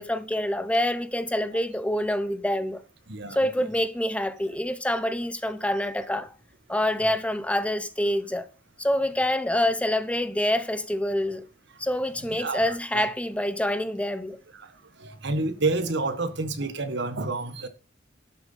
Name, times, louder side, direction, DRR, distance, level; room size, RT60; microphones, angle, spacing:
voice 1, 0.0-2.8 3.3-6.3 6.7-8.5 8.8-11.4 11.8-14.4, left 1 dB, 5° left, 0.8 m, -26 dB
voice 2, 12.4-13.1 15.2-17.7, right 3 dB, 65° right, 1.6 m, -28 dB
12.5 x 6.9 x 5.7 m
head